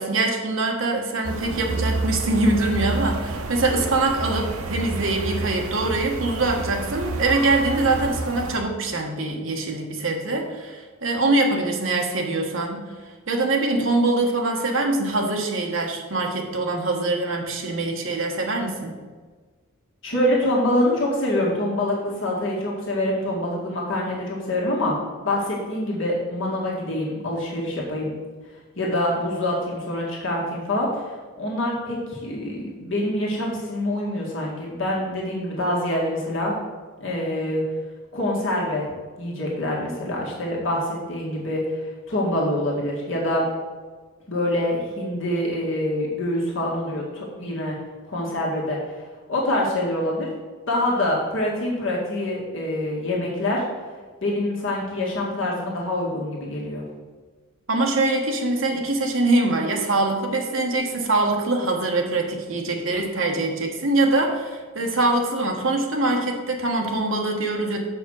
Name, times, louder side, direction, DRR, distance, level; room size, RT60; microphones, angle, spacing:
voice 1, 0.0-12.8 13.3-18.9 57.7-67.8, right 2 dB, 65° right, 2 dB, 1.3 m, -23 dB
sound 1, 1.2-8.6, right 2 dB, 85° right, 0.8 m, -29 dB
voice 2, 20.0-24.9 25.2-28.1 28.8-36.5 37.0-37.6 38.1-38.9 39.2-43.5 44.3-47.8 48.1-50.3 50.7-53.6 54.2-56.8, left 1 dB, 60° left, -4 dB, 1.8 m, -25 dB
7.0 x 5.2 x 6.3 m, 1.4 s
head